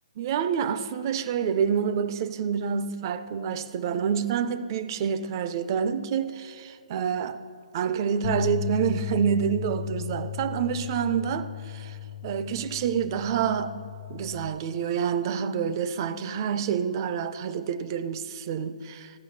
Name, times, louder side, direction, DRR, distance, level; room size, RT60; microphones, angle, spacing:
voice 1, 0.2-7.4 7.7-12.0 12.2-13.7 14.1-19.1, right 7 dB, 35° right, 0.5 m, -28 dB
sound 1, 8.2-14.5, left 10 dB, 50° left, 0.7 m, -35 dB
14.0 x 6.2 x 6.4 m
hypercardioid pair, 155°, 4 cm